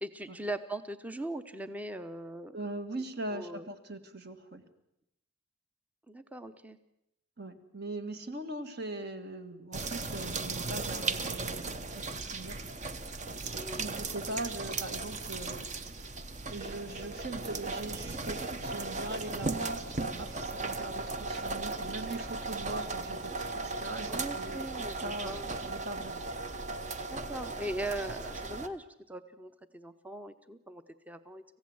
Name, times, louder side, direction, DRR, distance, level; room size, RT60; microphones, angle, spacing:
voice 1, 0.0-2.6 3.3-3.7 6.1-6.8 13.5-13.8 24.1-25.6 27.1-31.4, right 1 dB, 5° right, 11 dB, 0.8 m, -40 dB
voice 2, 2.5-4.6 7.4-12.7 13.8-15.7 16.5-26.3, right 2 dB, 50° right, 8 dB, 1.7 m, -41 dB
sound 1, 9.7-28.7, right 3 dB, 35° right, 1.0 m, -37 dB
26.5 x 15.5 x 7.9 m, 0.86 s
head